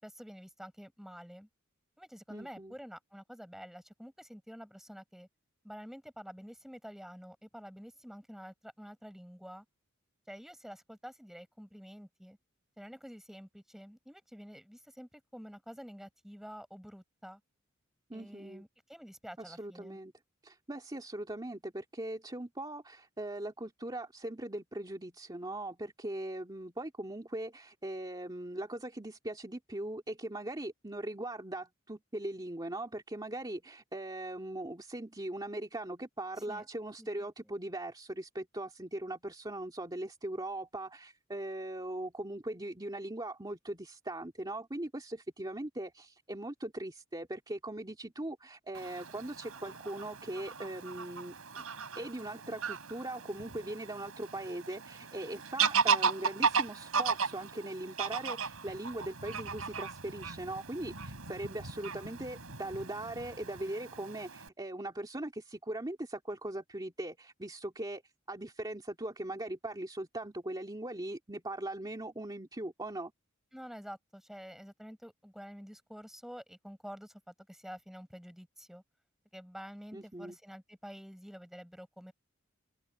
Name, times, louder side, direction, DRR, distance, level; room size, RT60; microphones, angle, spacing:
voice 1, 0.0-1.5 2.0-5.3 5.6-9.6 10.3-12.4 12.8-17.4 18.1-20.0 36.5-36.6 37.0-37.1 73.5-78.8 79.3-82.1, equal, ahead, 5.9 m, -49 dB
voice 2, 2.3-2.7 18.1-18.6 19.4-20.1 20.4-51.6 52.0-68.0 68.3-73.1 79.9-80.4, right 1 dB, 20° right, 2.6 m, -40 dB
Fowl / Bird vocalization bird call bird song, 48.7-64.5, right 5 dB, 85° right, 4.7 m, -36 dB
open air
head